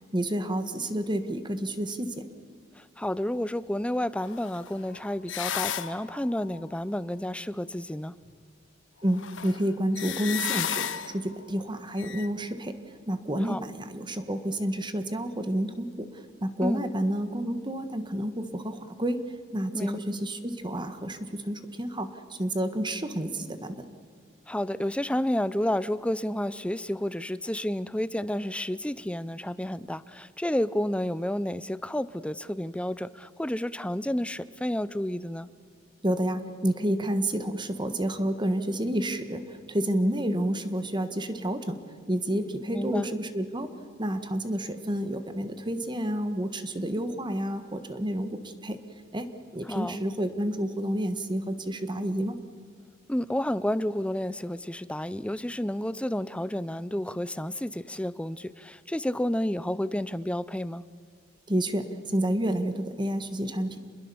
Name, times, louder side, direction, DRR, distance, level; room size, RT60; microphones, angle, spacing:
voice 1, 0.1-2.2 9.0-12.7 13.1-19.2 19.5-23.8 36.0-41.8 42.1-43.7 44.0-48.8 49.1-49.3 49.5-52.4 61.5-63.8, right 1 dB, 25° right, 9 dB, 1.6 m, -29 dB
voice 2, 2.8-8.1 13.4-13.6 16.6-16.9 19.7-20.0 24.5-35.5 42.7-43.1 49.7-50.0 53.1-60.8, left 1 dB, 5° left, 17 dB, 0.6 m, -30 dB
sound 1, 4.2-6.6 8.3-8.4 9.1-11.4 12.0-12.3, left 9 dB, 75° left, 1.0 m, -34 dB
28.0 x 21.0 x 7.1 m, 2.1 s
head